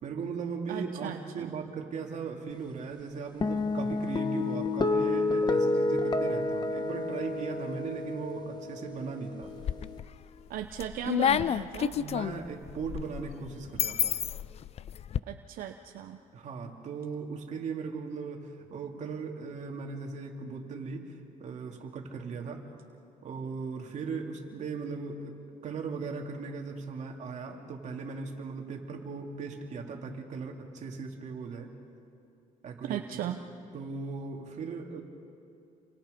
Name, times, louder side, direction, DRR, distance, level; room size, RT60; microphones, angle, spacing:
voice 1, 0.0-9.5 11.9-14.2 16.3-22.7 23.2-31.7 32.6-33.3 33.7-35.0, right 5 dB, 55° right, 2 dB, 2.7 m, -38 dB
voice 2, 0.7-1.6 10.5-12.0 15.3-16.2 32.8-33.4, right 11 dB, 80° right, 5 dB, 0.9 m, -36 dB
sound 1, 3.4-10.0, left 2 dB, 30° left, 1.2 m, -30 dB
sound 2, 9.4-10.1 10.6-15.2, left 9 dB, 45° left, 0.5 m, -30 dB
29.0 x 24.0 x 5.2 m, 2.6 s
cardioid pair, 125°, 15 cm